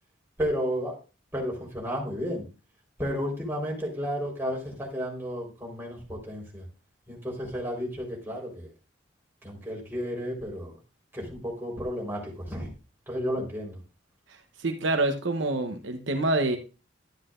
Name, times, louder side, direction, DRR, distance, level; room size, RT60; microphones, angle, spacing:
voice 1, 0.4-1.0 1.3-2.4 3.0-6.6 7.1-8.7 9.4-10.8 11.1-12.7 13.1-13.8, equal, 10° right, -2 dB, 4.1 m, -32 dB
voice 2, 14.6-16.6, right 2 dB, 75° right, 5 dB, 1.0 m, -26 dB
12.0 x 9.9 x 2.5 m, 0.31 s
head